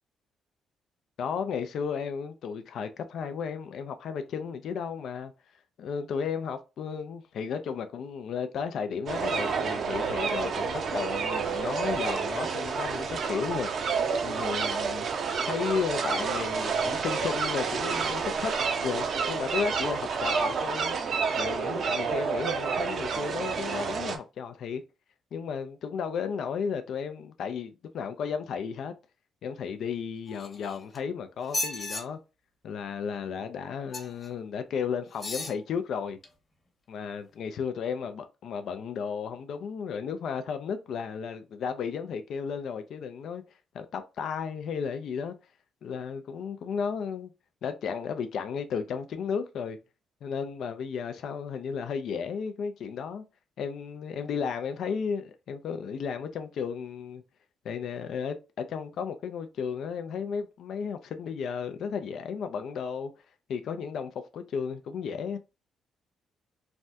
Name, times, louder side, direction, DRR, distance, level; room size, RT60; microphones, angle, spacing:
voice 1, 1.2-5.3 5.8-13.7 14.2-15.1 15.4-18.5 18.8-21.0 21.3-24.8 25.3-28.9 29.4-32.2 32.6-36.2 36.9-43.4 43.7-45.4 45.8-47.3 47.6-49.8 50.2-53.2 53.6-57.2 57.6-63.1 63.5-65.4, left 6 dB, 70° left, 0.3 m, -34 dB
sound 1, 9.1-24.2, right 5 dB, 60° right, 0.5 m, -29 dB
sound 2, 30.3-31.0 31.4-32.0 33.9-34.3 35.1-35.6 36.2-36.3, left 2 dB, 30° left, 1.0 m, -34 dB
3.3 x 2.2 x 2.6 m
cardioid pair, 90°, 0 cm